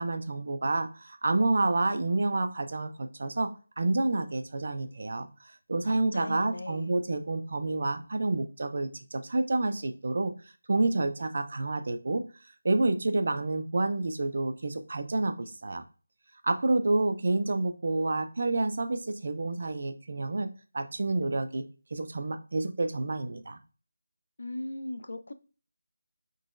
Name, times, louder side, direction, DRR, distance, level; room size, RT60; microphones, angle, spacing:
voice 1, 0.0-10.3 10.7-12.2 12.6-15.8 16.4-21.6 21.9-23.6, right 2 dB, 40° right, 0.4 m, -29 dB
voice 2, 5.8-6.9 24.4-25.3, left 1 dB, 60° left, 0.4 m, -38 dB
3.8 x 2.9 x 2.5 m
figure-of-eight pair, 180°, 0 cm